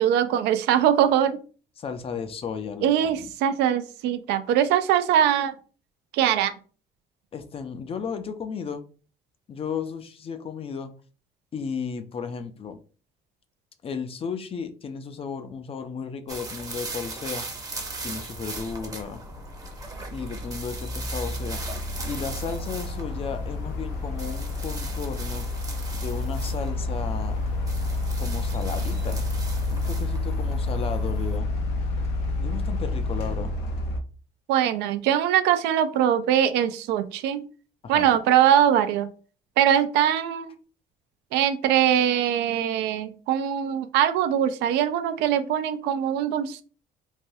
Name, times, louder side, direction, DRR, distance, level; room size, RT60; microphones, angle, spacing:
voice 1, 0.0-1.4 2.8-5.5 6.1-6.5 34.5-37.4 37.9-39.1 39.6-40.5 41.3-46.6, right 10 dB, 90° right, 9 dB, 0.4 m, -22 dB
voice 2, 1.8-3.3 7.3-8.8 9.5-10.9 11.5-12.8 13.8-17.5 18.0-19.2 20.1-21.6 22.1-25.5 25.9-27.4 28.2-29.2 29.7-31.5 32.4-33.5 37.8-38.2, left 6 dB, 35° left, 9 dB, 0.4 m, -34 dB
sound 1, 16.3-31.4, right 3 dB, 20° right, 0.7 m, -39 dB
sound 2, 18.2-18.3 18.9-34.0, left 2 dB, 80° left, 0.6 m, -29 dB
3.3 x 2.2 x 2.6 m, 0.38 s
cardioid pair, 110°, 17 cm